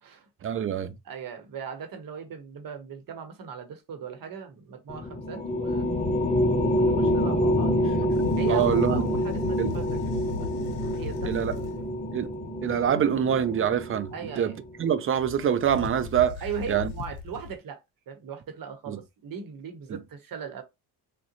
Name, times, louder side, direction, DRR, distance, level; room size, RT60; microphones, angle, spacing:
voice 1, 0.4-0.9 8.5-9.1 9.6-9.7 11.2-11.5 12.1-12.3 12.6-14.5 14.8-16.4 16.7-16.9 18.9-19.0 19.9-20.0, right 9 dB, 30° right, 0.5 m, -25 dB
voice 2, 1.0-5.9 6.7-7.9 8.4-10.5 10.8-11.9 14.1-14.6 16.4-17.8 18.1-20.6, right 7 dB, 55° right, 0.9 m, -38 dB
sound 1, 4.9-14.7, left 1 dB, 20° left, 0.7 m, -27 dB
sound 2, 8.1-12.0 15.2-17.5, left 6 dB, 70° left, 0.8 m, -38 dB
3.6 x 2.2 x 2.8 m
supercardioid pair, 80°, 42 cm